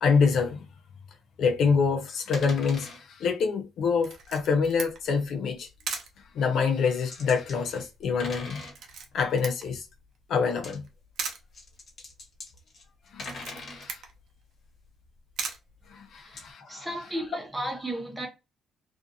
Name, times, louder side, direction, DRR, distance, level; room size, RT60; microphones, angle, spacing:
voice 1, 0.0-0.7 1.4-5.7 6.3-8.6 9.1-9.9 10.3-10.9 13.1-14.0 15.9-17.1, left 5 dB, 70° left, 0.6 m, -26 dB
sound 1, 2.3-3.0 5.1-5.2 5.9-6.0 6.9-7.6 8.0-8.8 10.5-10.8 11.3-13.9 16.4-16.5, left 2 dB, 50° left, 1.3 m, -41 dB
Camera, 4.0-16.5, right 5 dB, 70° right, 0.7 m, -42 dB
voice 2, 16.7-18.3, right 1 dB, 10° right, 1.0 m, -34 dB
2.5 x 2.5 x 2.6 m
cardioid pair, 90°, 0 cm